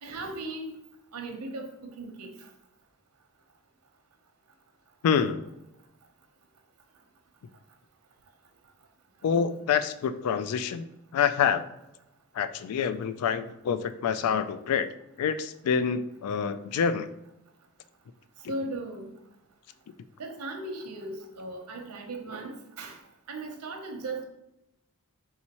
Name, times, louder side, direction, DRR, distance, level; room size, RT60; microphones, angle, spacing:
voice 1, 0.0-0.8 1.1-1.7 2.0-2.3 18.5-19.2 20.2-23.0 23.3-24.2, right 2 dB, 80° right, 3 dB, 0.8 m, -37 dB
voice 2, 5.0-5.4 9.2-10.9 11.1-11.6 12.3-14.9 15.2-17.1, left 7 dB, 70° left, 13 dB, 0.3 m, -27 dB
4.2 x 3.5 x 2.9 m, 0.89 s
head